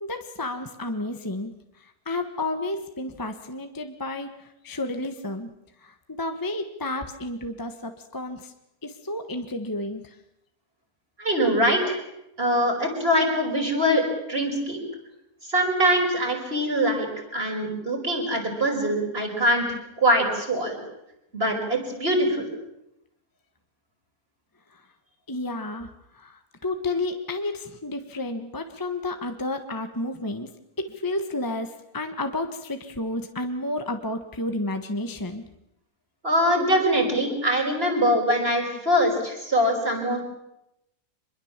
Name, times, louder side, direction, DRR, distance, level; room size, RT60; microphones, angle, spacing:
voice 1, 0.0-1.5 1.8-4.3 4.6-5.5 5.8-8.5 8.8-10.1 25.3-30.5 30.8-35.4, left 2 dB, 15° left, 6 dB, 1.3 m, -31 dB
voice 2, 11.2-12.0 12.4-14.8 15.4-17.1 17.3-19.7 20.0-20.8 21.3-22.5 36.2-40.2, equal, 35° right, 2 dB, 5.4 m, -23 dB
25.0 x 22.0 x 7.4 m, 0.85 s
omnidirectional pair, 1.7 m